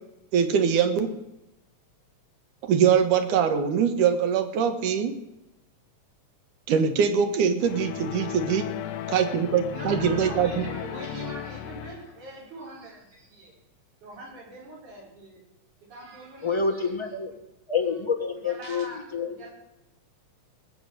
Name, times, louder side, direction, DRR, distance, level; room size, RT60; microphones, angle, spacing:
voice 1, 0.3-1.1 2.6-5.1 6.7-8.7 9.1-10.7, right 7 dB, 90° right, 8 dB, 2.8 m, -23 dB
sound 1, 7.6-12.2, left 11 dB, 85° left, 2.2 m, -35 dB
voice 2, 8.7-9.4 9.7-13.5 14.0-15.4 15.9-17.0 17.3-17.4 18.3-19.5, right 2 dB, 75° right, -2 dB, 5.9 m, -42 dB
voice 3, 16.4-17.3 17.7-18.8 19.1-19.3, left 5 dB, 20° left, 2 dB, 0.7 m, -27 dB
19.0 x 7.4 x 8.0 m, 0.90 s
omnidirectional pair, 3.5 m